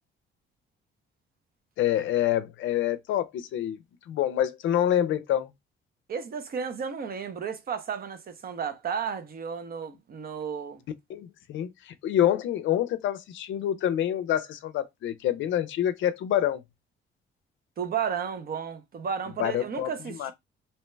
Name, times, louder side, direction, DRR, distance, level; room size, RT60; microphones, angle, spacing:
voice 1, 1.8-3.8 4.1-5.5 11.1-16.6 19.4-19.9 20.2-20.3, left 11 dB, 75° left, 0.4 m, -27 dB
voice 2, 6.1-10.8 17.8-20.3, right 7 dB, 50° right, 0.6 m, -33 dB
2.8 x 2.1 x 3.2 m
cardioid pair, 90°, 20 cm